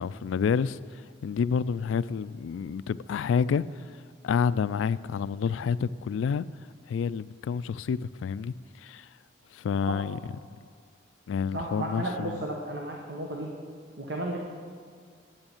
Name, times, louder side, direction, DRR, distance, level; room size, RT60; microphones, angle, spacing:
voice 1, 0.0-3.8 4.2-6.5 6.9-9.1 9.5-10.2 11.3-12.4, left 6 dB, 85° left, 0.3 m, -29 dB
voice 2, 11.5-13.5 14.0-14.4, right 1 dB, 60° right, 1.2 m, -33 dB
9.0 x 8.7 x 7.2 m
head